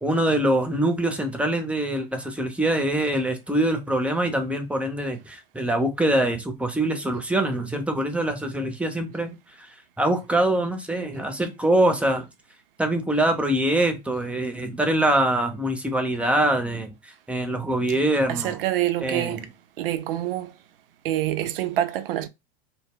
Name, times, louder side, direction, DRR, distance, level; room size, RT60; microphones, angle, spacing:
voice 1, 0.0-9.3 9.6-9.7 10.0-12.3 12.8-18.6 19.0-19.5, right 1 dB, 5° right, 0.5 m, -24 dB
voice 2, 18.3-19.5 19.8-20.5 21.0-22.3, right 13 dB, 70° right, 0.5 m, -26 dB
2.1 x 2.0 x 3.5 m
hypercardioid pair, 95°, 30 cm